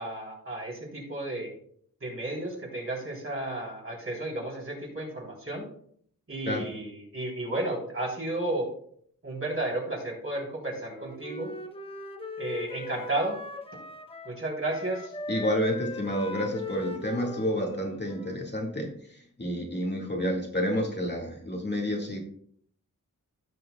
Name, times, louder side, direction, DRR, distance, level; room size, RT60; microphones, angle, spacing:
voice 1, 0.0-1.5 2.0-5.7 6.3-8.7 9.2-11.5 12.4-13.4 14.3-15.1, right 2 dB, 40° right, -2 dB, 3.4 m, -33 dB
Wind instrument woodwind instrument, 10.8-14.4 14.7-18.6, left 2 dB, 15° left, 1.0 m, -39 dB
voice 2, 15.3-18.9 19.4-22.2, equal, 30° left, -1 dB, 1.8 m, -29 dB
16.0 x 6.1 x 2.3 m, 0.63 s
wide cardioid pair, 90°, 33 cm